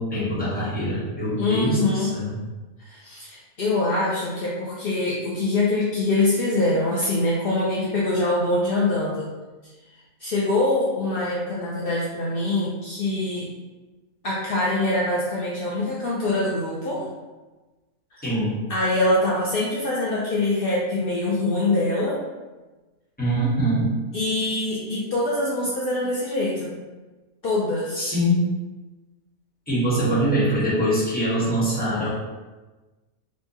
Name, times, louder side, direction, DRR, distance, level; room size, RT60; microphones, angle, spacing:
voice 1, 0.0-2.3 18.2-18.6 23.2-23.9 28.0-28.5 29.7-32.1, right 1 dB, 5° left, -9 dB, 1.0 m, -23 dB
voice 2, 1.4-2.1 2.8-9.3 10.2-13.5 14.2-17.1 18.1-18.2 18.7-22.2 24.1-26.8 27.4-28.1, left 2 dB, 70° left, -5 dB, 0.5 m, -24 dB
4.3 x 2.2 x 2.8 m, 1.2 s
omnidirectional pair, 1.6 m